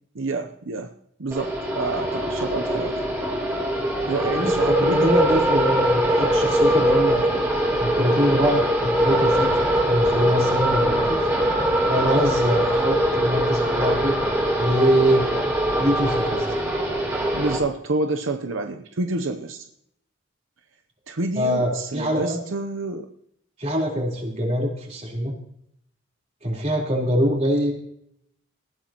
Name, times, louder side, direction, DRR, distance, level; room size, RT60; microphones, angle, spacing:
voice 1, 0.1-0.9 1.2-3.0 4.0-5.3 5.5-5.6 17.3-19.7 21.1-23.1, right 2 dB, 75° right, 6 dB, 0.8 m, -28 dB
sound 1, 1.3-17.6, equal, 15° right, 3.5 m, -22 dB
voice 2, 4.4-7.3 7.8-9.5 9.7-11.2 11.9-14.1 14.6-15.2 15.8-16.4 21.4-22.4 23.6-25.3 26.4-27.7, equal, 35° right, -2 dB, 4.0 m, -23 dB
19.5 x 14.5 x 3.0 m, 0.72 s
head